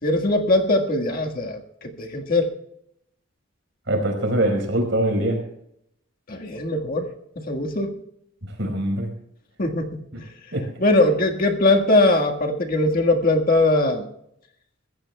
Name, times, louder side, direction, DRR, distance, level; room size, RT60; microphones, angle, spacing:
voice 1, 0.0-2.5 6.3-7.1 7.3-8.0 9.6-9.9 10.1-10.3 10.8-14.1, left 2 dB, 45° left, 2 dB, 1.7 m, -21 dB
voice 2, 3.9-5.4 8.6-9.1 10.5-10.7, right 1 dB, 65° right, 3 dB, 4.7 m, -22 dB
23.5 x 15.0 x 2.3 m, 0.76 s
head